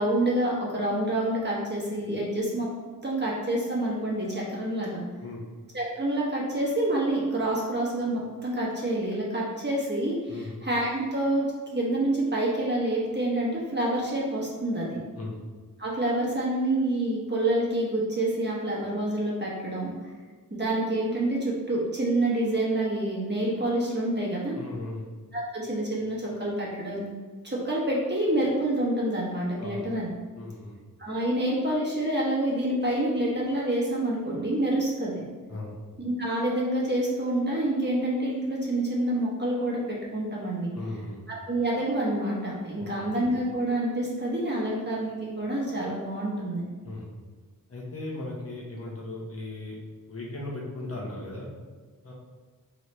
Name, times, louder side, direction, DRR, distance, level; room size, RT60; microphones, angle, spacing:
voice 1, 0.0-2.7 3.0-5.0 5.7-11.4 11.7-15.0 15.8-19.9 20.5-24.5 25.3-27.1 27.4-30.1 31.0-35.2 36.0-40.7 41.5-46.6, right 1 dB, 30° right, -5 dB, 1.2 m, -27 dB
voice 2, 10.3-10.6 15.1-15.4 24.5-25.1 29.6-29.9 30.3-30.8 35.5-35.7 40.7-41.2 42.8-43.1 46.8-47.1 47.7-49.8 50.1-51.5 52.0-52.1, left 2 dB, 45° left, -3 dB, 0.9 m, -37 dB
4.0 x 3.1 x 3.1 m, 1.4 s
wide cardioid pair, 85°, 33 cm